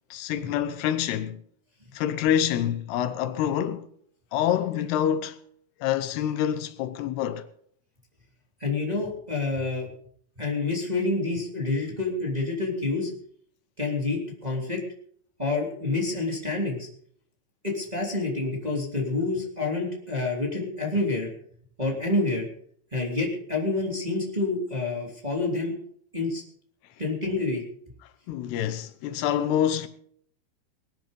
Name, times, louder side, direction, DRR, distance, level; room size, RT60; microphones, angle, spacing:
voice 1, 0.1-1.4 1.9-3.9 4.3-5.4 5.8-7.5 28.3-29.9, left 10 dB, 85° left, 2.9 m, -26 dB
voice 2, 8.6-9.9 10.4-13.1 13.8-14.8 15.4-16.9 17.6-21.3 21.8-22.4 22.9-25.8 26.1-26.4 27.0-27.6, left 3 dB, 10° right, 2.5 m, -28 dB
20.5 x 10.5 x 5.3 m
omnidirectional pair, 4.6 m